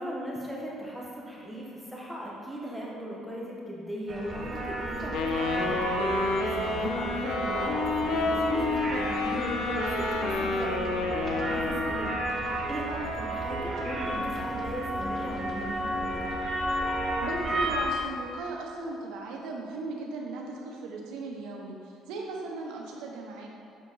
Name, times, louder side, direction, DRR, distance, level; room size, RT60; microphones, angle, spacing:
voice 1, 0.0-12.4 12.7-16.3, equal, ahead, -4 dB, 0.9 m, -38 dB
sound 1, 4.1-17.8, right 1 dB, 45° right, 0.9 m, -32 dB
Wind instrument woodwind instrument, 5.1-12.1, left 3 dB, 75° left, 0.6 m, -29 dB
voice 2, 17.2-23.5, right 3 dB, 90° right, 0 dB, 0.9 m, -37 dB
6.5 x 3.9 x 3.9 m, 2.5 s
cardioid pair, 110°, 0 cm